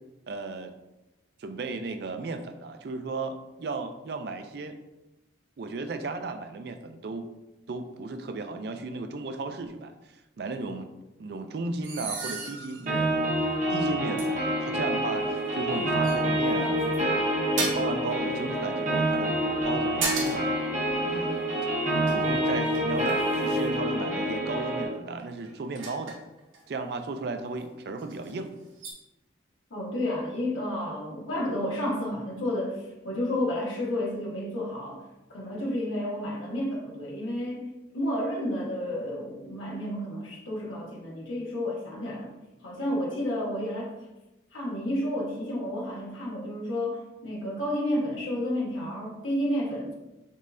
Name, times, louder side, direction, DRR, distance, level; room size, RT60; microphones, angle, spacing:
voice 1, 0.3-0.7 1.4-4.7 5.6-7.3 7.7-10.9 11.2-13.3 13.7-17.2 17.6-19.4 19.6-20.5 21.0-26.2 26.7-28.5, right 3 dB, 55° right, 8 dB, 0.4 m, -35 dB
sound 1, 11.8-13.0 13.5-13.6 14.2-14.3 15.5-15.7 16.0-17.0 17.6-18.0 19.5-20.6 20.8-21.0 21.8-23.8 25.2-26.6 27.6-27.7 28.0-28.3 28.8-28.9, right 3 dB, 85° right, 1.1 m, -35 dB
sound 2, 12.9-24.9, right 1 dB, 40° right, 1.0 m, -27 dB
voice 2, 29.7-35.0 35.3-37.6 37.9-42.3 42.6-43.9 44.5-49.9, left 1 dB, 90° left, -3 dB, 1.3 m, -31 dB
5.3 x 3.2 x 2.6 m, 1.0 s
head